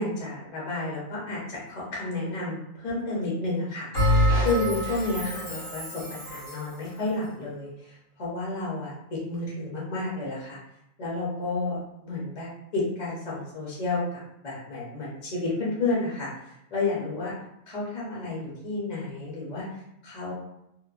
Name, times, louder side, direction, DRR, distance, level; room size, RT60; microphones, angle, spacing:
voice 1, 0.0-10.6 11.0-17.3 17.7-19.7 20.0-20.3, left 2 dB, 45° left, -5 dB, 0.7 m, -31 dB
Bell, 3.9-6.7, equal, 90° left, 1.5 m, -26 dB
3.0 x 2.0 x 2.4 m, 0.84 s
omnidirectional pair, 1.2 m